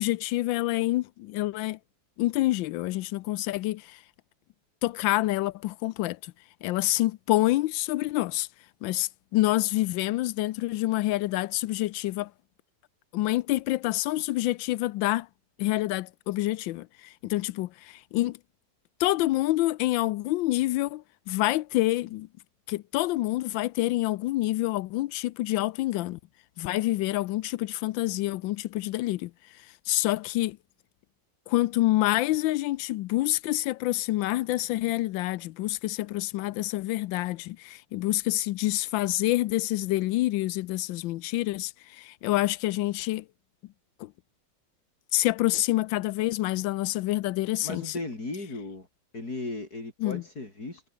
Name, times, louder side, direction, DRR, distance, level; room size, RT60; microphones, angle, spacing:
voice 1, 0.0-1.8 2.2-4.0 4.8-6.3 6.6-8.5 8.8-12.3 13.1-15.3 15.6-18.4 19.0-22.3 22.7-26.2 26.6-30.6 31.5-43.2 44.0-44.1 45.1-47.9 50.0-50.2, left 17 dB, 90° left, 1.3 m, -27 dB
voice 2, 47.6-48.9 49.1-50.8, left 2 dB, 55° left, 6.1 m, -36 dB
omnidirectional pair, 2.0 m